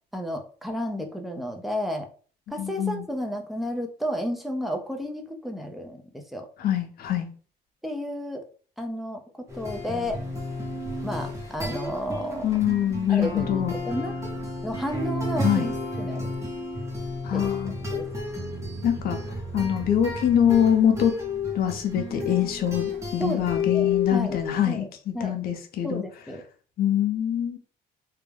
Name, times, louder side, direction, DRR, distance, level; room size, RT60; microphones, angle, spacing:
voice 1, 0.1-2.1 2.5-6.5 7.8-8.5 8.8-10.2 11.0-12.5 13.1-14.1 14.6-16.3 17.3-17.5 17.9-18.1 23.2-24.4 24.6-24.9 25.1-25.3 25.8-26.4, equal, ahead, 0.4 m, -32 dB
voice 2, 2.6-3.1 6.6-7.3 12.4-13.7 15.4-15.7 17.2-17.7 18.8-19.2 19.5-21.1 21.5-26.0 26.8-27.6, left 10 dB, 60° left, 0.6 m, -24 dB
sound 1, 9.5-24.6, left 3 dB, 15° right, 0.9 m, -31 dB
2.3 x 2.1 x 3.2 m
cardioid pair, 110°, 17 cm